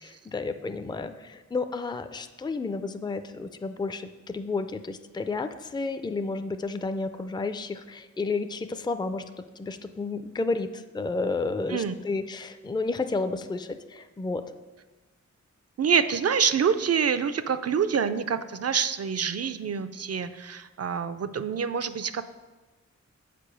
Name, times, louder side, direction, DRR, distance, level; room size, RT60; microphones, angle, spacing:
voice 1, 0.0-14.4, left 3 dB, 15° left, 9 dB, 0.4 m, -31 dB
voice 2, 15.8-22.2, right 7 dB, 55° right, 12 dB, 0.5 m, -26 dB
6.8 x 4.9 x 6.2 m, 1.2 s
wide cardioid pair, 75°, 29 cm